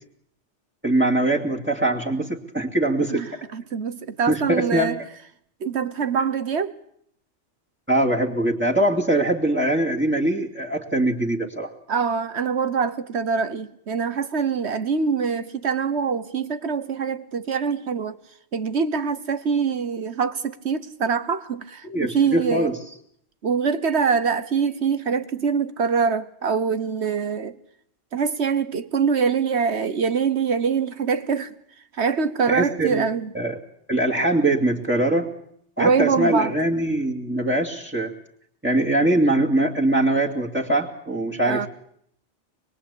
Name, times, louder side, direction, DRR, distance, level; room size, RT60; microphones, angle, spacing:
voice 1, 0.8-3.2 4.3-4.9 7.9-11.7 21.9-22.7 32.5-33.0 33.3-33.6 33.9-35.3 35.8-38.1 38.6-41.7, right 1 dB, 10° right, 2.6 m, -22 dB
voice 2, 3.1-5.0 5.6-6.7 11.9-18.2 18.5-22.8 23.4-27.6 28.1-31.5 31.9-33.3 35.8-36.5 41.4-41.7, right 6 dB, 65° right, 1.5 m, -24 dB
25.0 x 22.5 x 8.5 m
omnidirectional pair, 1.2 m